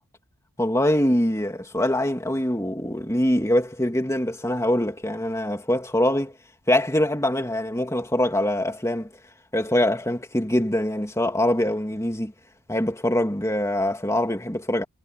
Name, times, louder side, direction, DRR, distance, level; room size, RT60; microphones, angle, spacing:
voice 1, 0.6-6.3 6.7-9.1 9.5-12.3 12.7-14.8, left 1 dB, 15° left, 2.8 m, -23 dB
head